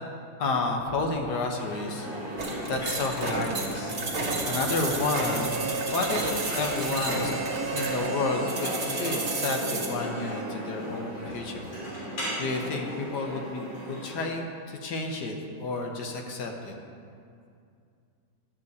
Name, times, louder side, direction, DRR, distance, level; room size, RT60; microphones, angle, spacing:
voice 1, 0.4-2.1 2.7-3.9 4.5-5.6 5.9-7.3 7.7-11.7 12.4-16.7, left 3 dB, 65° left, 2 dB, 1.5 m, -31 dB
sound 1, 1.6-14.3, equal, 85° left, 3.8 m, -36 dB
sound 2, 2.4-9.9, right 3 dB, 40° right, 1.5 m, -32 dB
Harmonica, 5.0-10.8, right 4 dB, 60° right, 1.7 m, -36 dB
11.5 x 5.3 x 8.0 m, 2.4 s
omnidirectional pair, 2.0 m